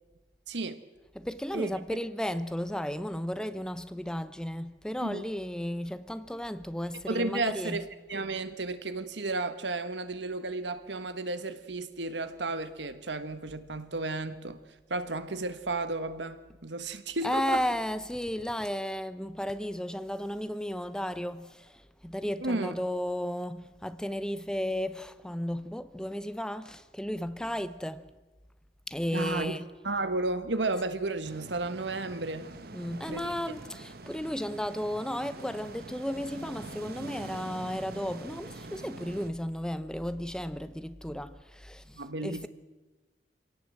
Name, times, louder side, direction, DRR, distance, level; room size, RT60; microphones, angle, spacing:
voice 1, 0.5-0.8 1.5-1.7 5.0-5.2 7.1-14.6 14.9-17.6 22.4-22.8 29.1-29.5 29.8-32.5 32.9-33.3 41.9-42.5, right 2 dB, 80° right, 1.5 m, -33 dB
voice 2, 1.1-7.8 17.2-28.1 28.9-29.7 32.7-42.5, equal, 5° left, 0.7 m, -34 dB
sound 1, 31.2-39.3, right 2 dB, 60° right, 1.3 m, -45 dB
26.0 x 17.5 x 7.8 m
head